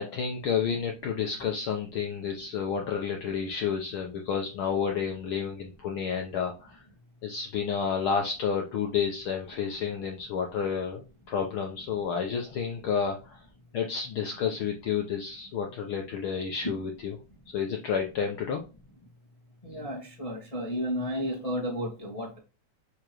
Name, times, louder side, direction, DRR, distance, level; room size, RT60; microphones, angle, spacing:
voice 1, 0.0-6.8 7.2-13.4 13.7-17.2 17.5-18.6, left 6 dB, 90° left, 2 dB, 1.1 m, -30 dB
voice 2, 19.6-22.4, equal, 20° left, -3 dB, 0.9 m, -32 dB
6.7 x 5.1 x 3.0 m, 0.31 s
omnidirectional pair, 3.4 m